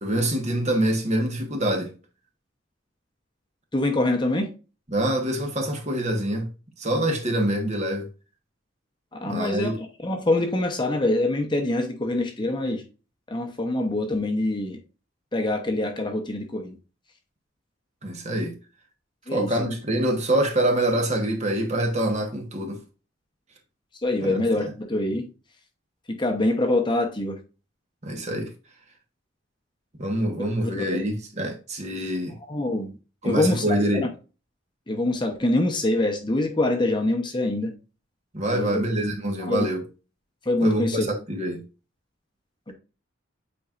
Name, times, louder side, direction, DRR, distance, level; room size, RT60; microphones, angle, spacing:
voice 1, 0.0-1.9 4.9-6.5 6.8-8.1 9.2-9.7 18.0-18.5 19.3-22.8 24.2-24.4 28.0-28.5 30.0-32.3 33.2-34.1 38.3-39.8 40.6-41.6, right 1 dB, 35° right, 1.5 m, -25 dB
voice 2, 3.7-4.5 9.1-12.8 13.3-14.8 15.3-16.7 19.3-19.7 24.0-25.3 26.1-27.4 30.7-31.0 32.5-32.9 33.2-33.6 34.0-34.1 34.9-37.7 38.5-38.8 39.5-39.7 40.4-41.1 42.7-42.8, left 2 dB, 25° left, 0.9 m, -25 dB
8.3 x 4.6 x 2.5 m
head